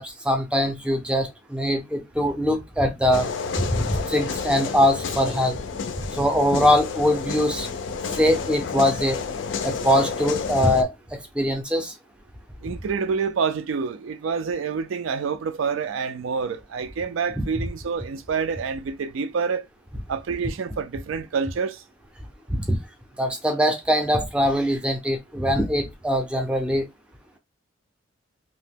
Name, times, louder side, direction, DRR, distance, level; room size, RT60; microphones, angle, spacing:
voice 1, 0.0-3.3 3.6-5.6 6.1-7.7 8.1-9.2 9.6-11.9 22.5-22.8 23.2-26.9, equal, 5° right, 0.5 m, -22 dB
sound 1, 3.1-10.8, left 5 dB, 65° left, 0.4 m, -30 dB
voice 2, 12.6-19.7 20.1-21.8, right 5 dB, 75° right, 0.4 m, -27 dB
2.8 x 2.1 x 3.5 m
head